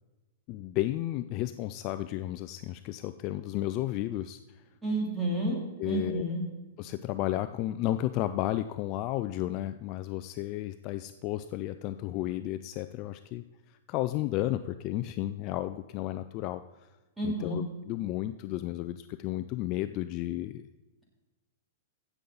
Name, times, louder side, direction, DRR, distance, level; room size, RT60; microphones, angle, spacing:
voice 1, 0.5-4.6 5.8-6.2 6.8-16.6 17.2-20.7, left 14 dB, 35° left, 11 dB, 0.3 m, -33 dB
voice 2, 4.8-5.6 5.8-6.4 17.2-17.6, right 1 dB, 5° right, -3 dB, 2.9 m, -30 dB
16.0 x 7.0 x 3.9 m, 1.1 s
hypercardioid pair, 150°, 0 cm